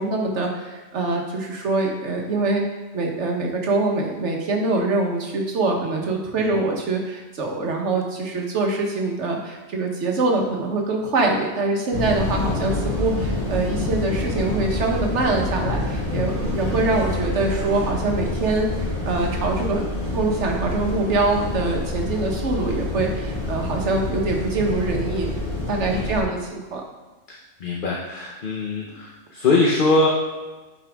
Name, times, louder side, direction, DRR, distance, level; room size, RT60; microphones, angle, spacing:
voice 1, 0.0-2.6 2.9-19.8 20.1-25.3 25.7-26.8, right 3 dB, 65° right, 1 dB, 1.4 m, -24 dB
sound 1, 11.9-26.2, left 2 dB, 85° left, 2.9 m, -27 dB
voice 2, 27.3-30.1, left 3 dB, 45° left, -2 dB, 0.9 m, -22 dB
8.7 x 5.1 x 3.5 m, 1.2 s
omnidirectional pair, 1.3 m